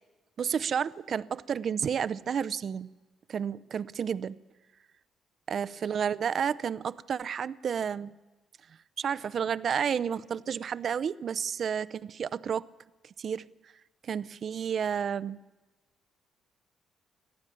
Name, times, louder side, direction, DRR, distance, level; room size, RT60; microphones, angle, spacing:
voice 1, 0.4-2.9 3.3-4.4 5.5-8.1 9.0-12.7 13.2-13.5 14.0-15.4, right 7 dB, 55° right, 17 dB, 0.6 m, -31 dB
21.5 x 14.5 x 9.5 m, 1.2 s
cardioid pair, 90°, 0 cm